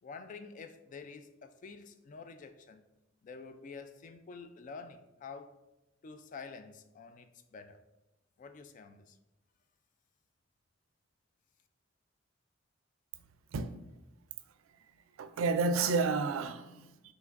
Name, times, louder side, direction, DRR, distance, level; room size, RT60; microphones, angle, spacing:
voice 1, 0.0-2.8 3.2-5.6 6.0-7.8 8.4-9.2, left 4 dB, 40° left, 0.3 m, -48 dB
voice 2, 13.5-13.9 15.2-17.1, right 4 dB, 90° right, 0.4 m, -31 dB
5.7 x 3.0 x 2.5 m
head